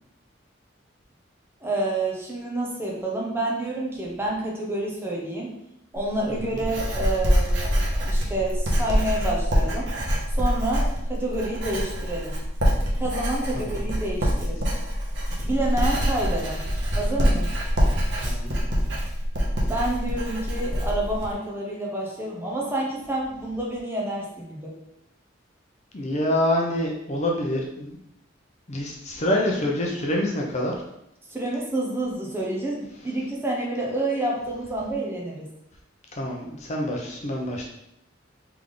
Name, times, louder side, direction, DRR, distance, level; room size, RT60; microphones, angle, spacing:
voice 1, 1.6-5.5 5.9-9.9 10.4-12.3 13.0-14.6 15.5-16.6 16.9-17.5 19.7-24.7 31.3-35.4, right 1 dB, 10° right, -3 dB, 0.9 m, -28 dB
Writing, 5.9-21.3, equal, 65° right, 1.0 m, -25 dB
voice 2, 25.9-28.0 28.7-30.7 36.2-37.7, left 1 dB, 35° left, 0 dB, 0.6 m, -26 dB
3.5 x 3.4 x 3.8 m, 0.80 s
head